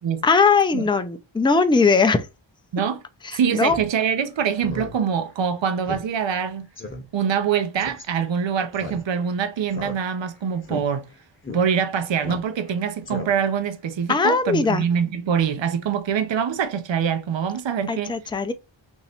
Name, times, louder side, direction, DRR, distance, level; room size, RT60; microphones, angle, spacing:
voice 1, 0.2-2.3 3.2-3.8 14.1-14.8 17.9-18.5, left 4 dB, 10° left, 0.4 m, -19 dB
voice 2, 2.7-3.0 3.3-6.7 7.1-11.1 11.5-18.1, right 7 dB, 65° right, 0.7 m, -24 dB
Speech synthesizer, 3.6-3.9 4.2-4.3 4.6-4.9 5.3-5.4 5.9-6.0 6.3-6.4 6.8-7.0 7.8-8.0 8.7-9.3 9.7-10.3 10.6-10.8 11.4-11.6 12.2-12.7 13.0-13.6, left 2 dB, 25° left, 0.9 m, -35 dB
3.0 x 2.7 x 4.2 m
wide cardioid pair, 85°, 48 cm